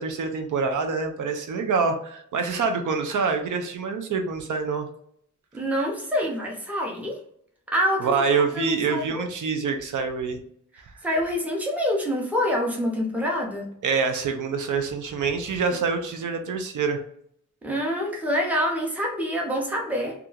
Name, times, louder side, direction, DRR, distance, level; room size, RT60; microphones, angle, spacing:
voice 1, 0.0-4.9 8.0-10.4 10.8-10.9 13.8-17.0, right 5 dB, 75° right, 5 dB, 0.5 m, -26 dB
voice 2, 5.5-7.2 7.7-8.1 8.5-9.3 11.0-13.7 17.6-20.1, equal, 5° right, -1 dB, 0.6 m, -26 dB
2.8 x 2.4 x 2.3 m, 0.68 s
wide cardioid pair, 155°, 31 cm